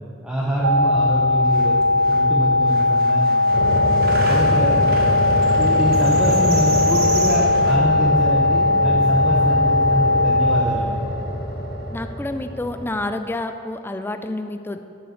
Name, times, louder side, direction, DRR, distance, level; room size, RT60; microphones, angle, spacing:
voice 1, 0.2-1.8 2.1-3.4 4.3-4.8 5.5-10.9, equal, 5° right, -6 dB, 0.9 m, -24 dB
sound 1, 0.6-2.9 3.5-12.9, left 1 dB, 50° left, 1.1 m, -27 dB
sound 2, 0.6-10.6, left 2 dB, 70° right, 0.5 m, -18 dB
sound 3, 1.2-1.3 1.4-2.2 2.6-7.8, right 2 dB, 50° right, 1.2 m, -33 dB
voice 2, 11.9-14.8, left 2 dB, 10° left, 8 dB, 0.3 m, -28 dB
7.5 x 6.9 x 6.4 m, 2.7 s
head